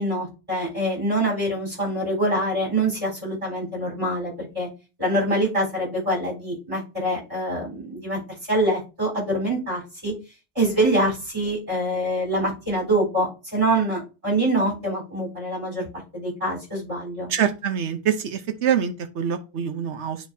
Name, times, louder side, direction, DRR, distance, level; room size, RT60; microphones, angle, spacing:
voice 1, 0.0-4.7 5.0-8.2 8.5-10.1 10.5-15.9 16.1-17.3, right 1 dB, 30° right, -3 dB, 4.3 m, -25 dB
voice 2, 17.3-20.2, right 8 dB, 85° right, 7 dB, 1.2 m, -25 dB
10.0 x 3.6 x 2.7 m, 0.30 s
omnidirectional pair, 1.1 m